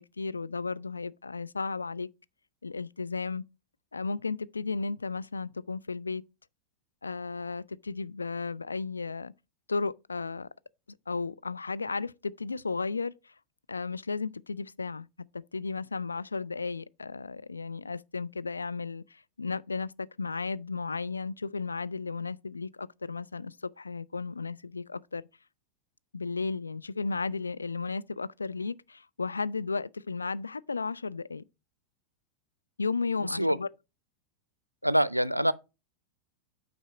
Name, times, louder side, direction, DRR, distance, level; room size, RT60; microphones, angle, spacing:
voice 1, 0.0-2.1 2.6-3.4 3.9-6.2 7.0-9.3 9.7-10.5 11.1-13.3 13.7-15.1 15.5-25.2 26.1-31.4 32.8-33.7, left 4 dB, 75° left, 0.3 m, -34 dB
voice 2, 34.8-35.5, equal, 90° right, 0.4 m, -25 dB
9.0 x 4.0 x 4.9 m
figure-of-eight pair, 90°, 0 cm